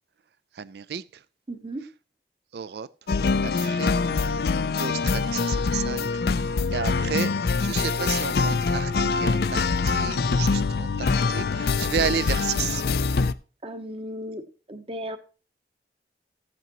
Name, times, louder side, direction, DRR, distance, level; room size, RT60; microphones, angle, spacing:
voice 1, 0.6-1.0 2.5-2.9 3.4-3.9 4.8-6.1 6.7-7.3 7.6-12.8, right 7 dB, 65° right, 0.4 m, -32 dB
voice 2, 1.5-1.9 13.6-15.2, equal, 30° right, 0.9 m, -35 dB
Slow and Easy, 3.1-13.3, left 4 dB, 60° left, 0.4 m, -24 dB
15.0 x 8.3 x 3.0 m
head